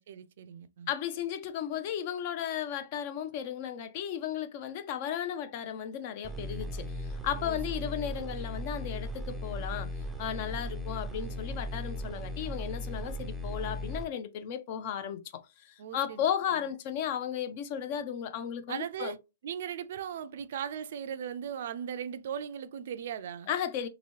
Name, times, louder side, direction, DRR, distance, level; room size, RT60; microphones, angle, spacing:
voice 1, 0.0-0.9 7.4-7.6 8.1-8.2 15.8-16.2 18.7-19.2 19.4-23.5, right 8 dB, 60° right, 0.4 m, -38 dB
voice 2, 0.9-9.9 10.2-19.2 23.5-23.9, left 9 dB, 40° left, 0.5 m, -35 dB
sound 1, 6.2-14.0, equal, 5° right, 0.5 m, -37 dB
2.9 x 2.6 x 2.8 m
hypercardioid pair, 140°, 0 cm